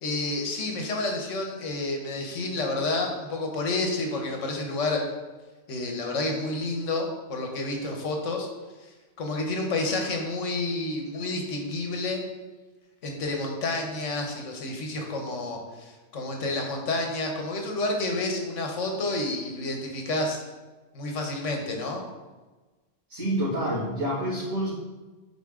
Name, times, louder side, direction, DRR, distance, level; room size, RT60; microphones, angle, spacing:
voice 1, 0.0-5.0 5.7-8.5 8.8-12.2 13.0-20.4 20.9-22.0, left 2 dB, 85° left, 2 dB, 1.3 m, -30 dB
voice 2, 23.1-24.7, equal, 80° right, -12 dB, 2.5 m, -28 dB
8.2 x 4.1 x 3.7 m, 1.2 s
omnidirectional pair, 1.2 m